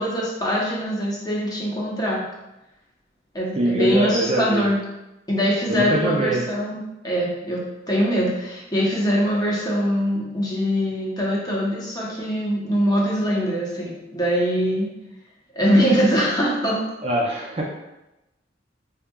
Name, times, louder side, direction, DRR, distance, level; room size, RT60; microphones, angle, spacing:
voice 1, 0.0-2.2 3.3-4.8 5.3-14.9 15.5-16.8, equal, 20° left, -4 dB, 0.8 m, -23 dB
voice 2, 3.6-4.7 5.7-6.5 17.0-17.7, right 1 dB, 35° right, -1 dB, 0.5 m, -23 dB
4.7 x 2.8 x 2.3 m, 0.96 s
head